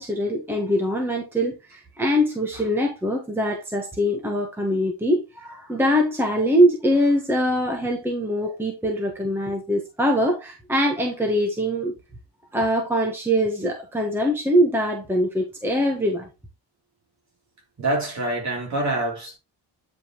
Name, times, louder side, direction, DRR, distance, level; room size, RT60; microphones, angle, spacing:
voice 1, 0.0-11.9 12.5-16.3, equal, 5° right, 1.1 m, -23 dB
voice 2, 17.8-19.4, right 1 dB, 40° right, 3.2 m, -26 dB
9.3 x 5.1 x 3.0 m
cardioid pair, 170°, 42 cm